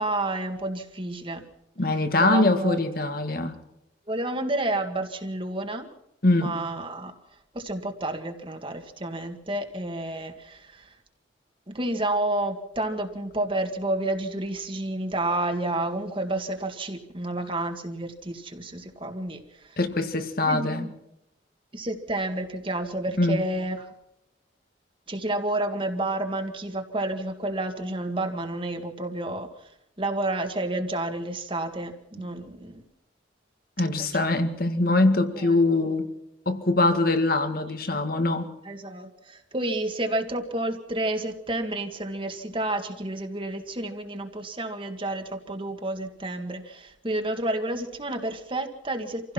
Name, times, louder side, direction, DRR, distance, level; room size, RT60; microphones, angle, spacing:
voice 1, 0.0-1.4 2.2-2.8 4.1-5.9 6.4-7.1 7.5-10.9 11.7-19.8 20.5-20.9 21.7-23.9 25.1-29.7 30.0-32.8 34.0-34.3 35.3-35.6 38.6-49.3, right 1 dB, 30° right, 5 dB, 1.9 m, -30 dB
voice 2, 1.8-3.6 6.2-6.5 19.8-20.9 23.2-23.4 33.8-36.1 36.5-38.5, left 2 dB, 50° left, 8 dB, 2.0 m, -23 dB
27.0 x 16.0 x 6.0 m, 0.84 s
head